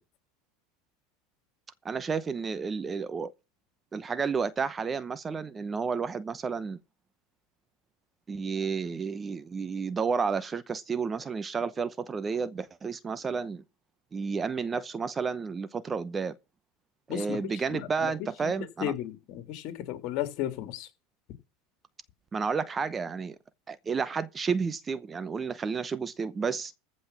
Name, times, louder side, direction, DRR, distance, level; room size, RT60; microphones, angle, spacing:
voice 1, 1.8-3.3 3.9-6.8 8.3-13.6 14.1-16.3 17.1-18.9 22.3-23.4 23.7-26.7, right 5 dB, 20° right, 0.8 m, -31 dB
voice 2, 18.8-20.9, left 12 dB, 55° left, 3.1 m, -34 dB
15.0 x 5.4 x 7.3 m
supercardioid pair, 130°, 0 cm